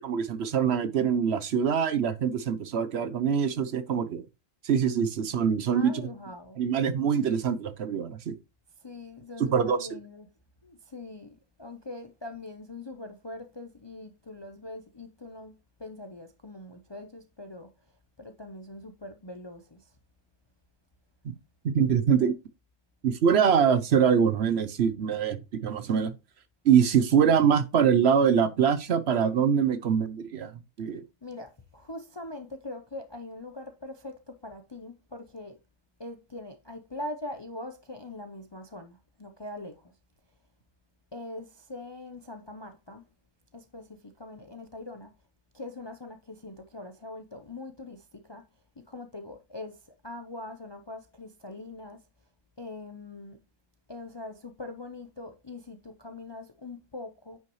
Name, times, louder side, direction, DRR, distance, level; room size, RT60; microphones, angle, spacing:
voice 1, 0.0-4.2 4.6-5.9 6.6-8.3 9.4-9.8 21.6-22.3 23.0-26.1 26.6-30.5 30.8-31.0, right 7 dB, 60° right, 0.9 m, -24 dB
voice 2, 5.7-6.6 8.8-10.3 10.6-15.5 15.8-20.0 22.2-22.3 31.2-35.6 36.0-40.0 41.1-43.1 43.5-45.1 45.5-48.5 48.8-52.1 52.6-53.4 53.9-57.4, left 2 dB, 30° left, 0.5 m, -42 dB
9.3 x 5.7 x 3.1 m
omnidirectional pair, 1.3 m